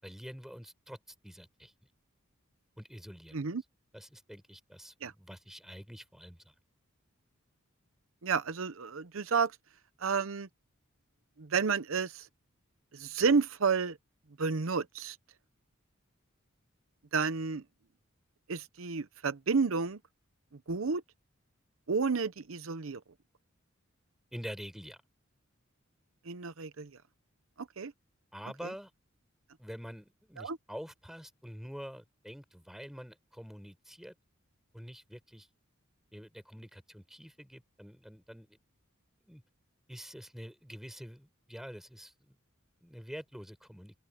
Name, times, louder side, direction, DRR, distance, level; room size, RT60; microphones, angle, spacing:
voice 1, 0.0-1.0 1.2-1.7 2.8-3.4 3.9-6.5 24.3-25.0 28.3-28.9 29.6-34.1 34.7-35.5 36.1-38.6 39.2-39.4 39.9-42.4 42.8-43.9, equal, ahead, 6.4 m, -46 dB
voice 2, 8.2-9.5 10.0-10.5 11.4-12.3 12.9-14.0 14.4-15.2 17.1-17.6 18.5-20.0 20.7-21.0 21.9-23.0 26.3-26.9 27.6-27.9 30.4-30.6, right 5 dB, 75° right, 0.8 m, -31 dB
open air
head